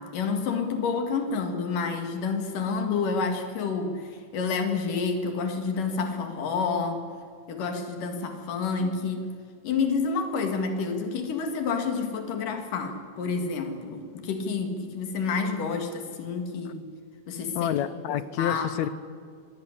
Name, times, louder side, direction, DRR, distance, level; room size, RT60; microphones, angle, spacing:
voice 1, 0.0-7.0 7.5-9.3 9.6-16.8 17.3-17.7 18.1-18.9, left 5 dB, 90° left, 6 dB, 3.6 m, -29 dB
voice 2, 17.6-18.9, left 11 dB, 75° left, 15 dB, 2.0 m, -28 dB
25.0 x 18.0 x 10.0 m, 2.2 s
omnidirectional pair, 3.6 m